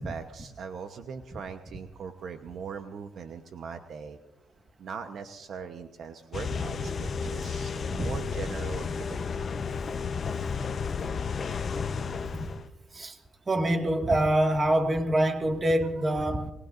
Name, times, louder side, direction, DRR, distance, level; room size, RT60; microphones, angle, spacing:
voice 1, 0.0-4.2 4.8-9.3 16.0-16.1, right 6 dB, 65° right, 1.0 m, -40 dB
sound 1, 6.3-12.7, left 5 dB, 45° left, 0.9 m, -32 dB
voice 2, 13.5-16.5, right 1 dB, 30° right, 2.0 m, -25 dB
24.0 x 19.5 x 2.6 m
cardioid pair, 90°, 0 cm